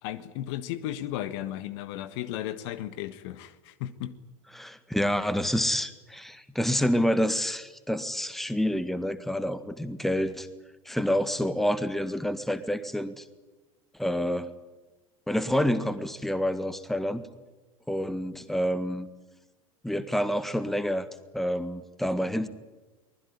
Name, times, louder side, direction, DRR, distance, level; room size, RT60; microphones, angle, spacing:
voice 1, 0.0-4.1, left 12 dB, 50° left, 14 dB, 1.4 m, -35 dB
voice 2, 4.5-10.5 10.8-13.2 14.0-14.5 15.3-17.2 17.9-19.1 19.8-21.1 21.3-22.5, equal, ahead, 13 dB, 1.7 m, -28 dB
23.5 x 20.5 x 10.0 m, 1.2 s
figure-of-eight pair, 80°, 18 cm